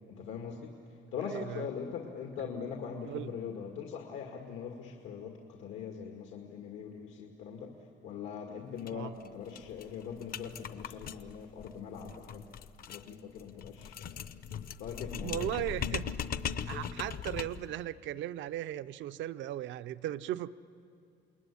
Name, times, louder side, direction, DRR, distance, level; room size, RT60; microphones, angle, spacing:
voice 1, 0.1-0.7 1.1-7.7 8.0-12.4 12.9-14.2 14.8-15.5, left 6 dB, 90° left, 2 dB, 2.0 m, -41 dB
voice 2, 1.2-1.7 2.4-2.5 3.0-3.3 8.9-9.1 15.2-16.1 16.7-20.5, right 13 dB, 75° right, 12 dB, 0.6 m, -37 dB
sound 1, 8.8-8.9 9.2-9.3 9.6-17.7, left 8 dB, 50° left, 0.7 m, -40 dB
28.0 x 21.0 x 10.0 m, 2.5 s
cardioid pair, 160°, 20 cm